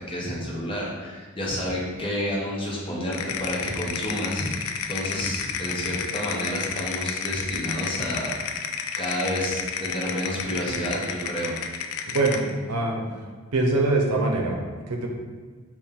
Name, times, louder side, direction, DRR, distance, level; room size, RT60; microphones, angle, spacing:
voice 1, 0.1-8.6 9.0-11.5, equal, 25° left, -3 dB, 0.7 m, -30 dB
sound 1, 3.1-12.5, left 7 dB, 70° left, 0.3 m, -31 dB
voice 2, 12.1-13.1 13.5-15.1, right 2 dB, 80° right, 1 dB, 0.6 m, -24 dB
4.3 x 2.2 x 3.6 m, 1.5 s
head